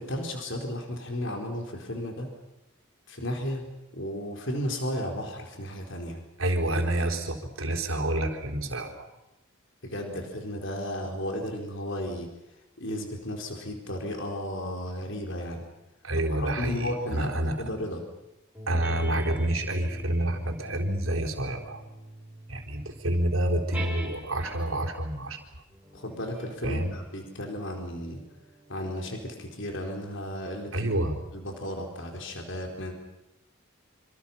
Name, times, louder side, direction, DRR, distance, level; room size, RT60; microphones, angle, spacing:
voice 1, 0.0-2.3 3.1-3.6 3.9-6.2 9.8-12.3 12.8-15.6 16.2-18.0 25.9-28.2 28.7-31.0 31.3-32.9, left 1 dB, 60° left, 2 dB, 4.5 m, -34 dB
voice 2, 6.4-9.1 16.0-17.6 18.7-21.8 22.5-25.4 26.6-26.9 30.7-31.2, right 1 dB, 70° right, 3 dB, 4.1 m, -28 dB
sound 1, 18.5-24.9 25.7-30.6, right 1 dB, 5° right, 6.2 m, -44 dB
27.0 x 26.5 x 5.8 m, 0.93 s
head